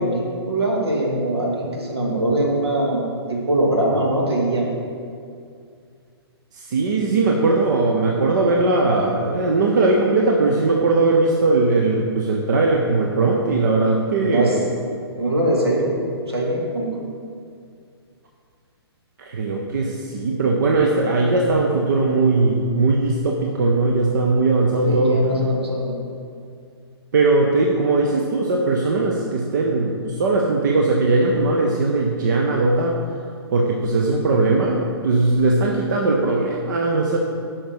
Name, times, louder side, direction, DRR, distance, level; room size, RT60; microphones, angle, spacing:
voice 1, 0.0-4.7 14.2-14.6 15.2-16.9 24.8-26.0, right 1 dB, 70° right, -2 dB, 2.1 m, -22 dB
voice 2, 6.7-14.6 19.2-25.2 27.1-33.0 33.5-37.2, right 3 dB, 45° right, 0 dB, 0.8 m, -19 dB
8.8 x 5.8 x 5.1 m, 2.3 s
figure-of-eight pair, 120°, 14 cm